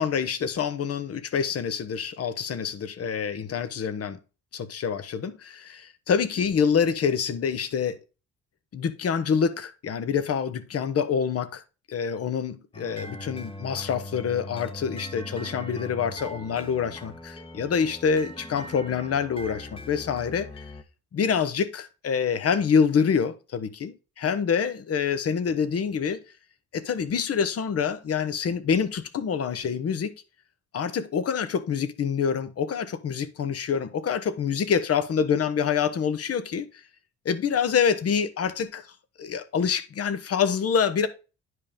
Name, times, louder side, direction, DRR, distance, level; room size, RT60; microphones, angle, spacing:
voice 1, 0.0-4.2 4.5-8.0 8.7-11.6 11.9-20.7 21.1-26.2 26.7-30.1 30.7-36.7 37.2-38.9 39.2-41.1, left 6 dB, 50° left, 1.1 m, -26 dB
sound 1, 12.7-20.8, left 1 dB, 20° left, 1.1 m, -40 dB
9.7 x 5.3 x 3.6 m
cardioid pair, 90°, 30 cm